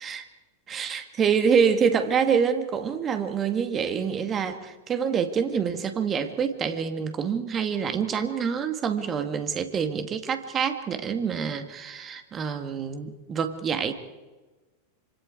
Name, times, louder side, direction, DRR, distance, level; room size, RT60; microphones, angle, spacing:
voice 1, 0.7-13.9, right 6 dB, 25° right, 7 dB, 2.2 m, -26 dB
27.0 x 26.0 x 4.8 m, 1.2 s
figure-of-eight pair, 90°, 0 cm